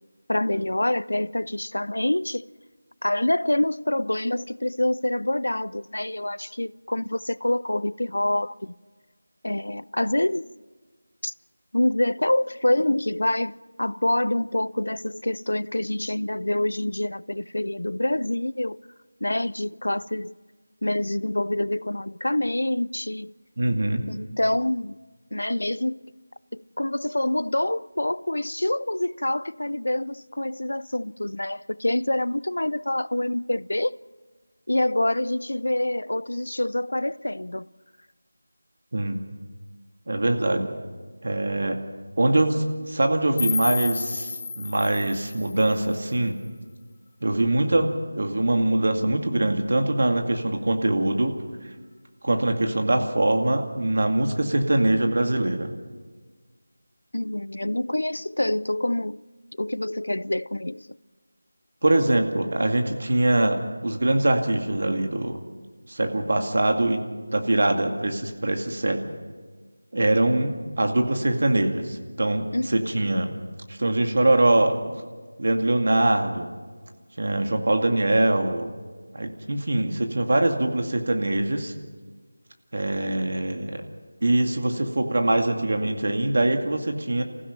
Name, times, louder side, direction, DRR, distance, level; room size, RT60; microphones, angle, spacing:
voice 1, 0.3-2.5 3.0-8.7 9.4-10.5 11.2-11.3 11.7-18.8 19.2-20.3 20.8-23.3 24.1-25.0 25.3-26.1 26.5-34.0 34.7-37.7 57.1-59.2 59.6-60.9 72.5-73.1, left 1 dB, 85° left, 0.5 m, -26 dB
voice 2, 23.6-24.0 38.9-39.2 40.1-40.7 41.2-41.8 42.2-46.3 47.2-47.9 48.1-51.3 52.2-55.7 61.8-65.4 65.9-67.0 67.3-69.0 69.9-73.3 73.7-74.8 75.4-76.5 77.2-78.7 79.1-81.7 82.7-83.8 84.2-87.2, right 1 dB, 55° right, 2.2 m, -23 dB
sound 1, 43.4-46.4, left 4 dB, 20° left, 1.7 m, -32 dB
29.0 x 15.5 x 6.0 m
figure-of-eight pair, 170°, 0 cm